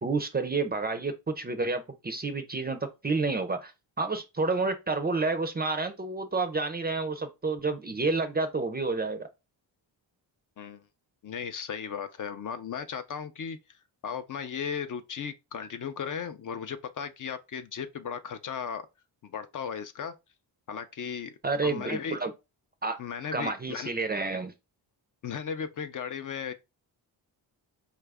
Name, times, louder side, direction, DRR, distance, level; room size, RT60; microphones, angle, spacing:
voice 1, 0.0-3.7 4.0-9.3 21.4-22.3 22.8-23.0 23.3-24.5, right 3 dB, 20° right, 0.4 m, -29 dB
voice 2, 11.2-13.8 14.0-18.8 19.2-20.1 20.7-21.3 21.6-22.2 23.0-23.9 25.2-26.5, left 7 dB, 45° left, 0.4 m, -36 dB
4.6 x 2.4 x 3.4 m
cardioid pair, 110°, 45 cm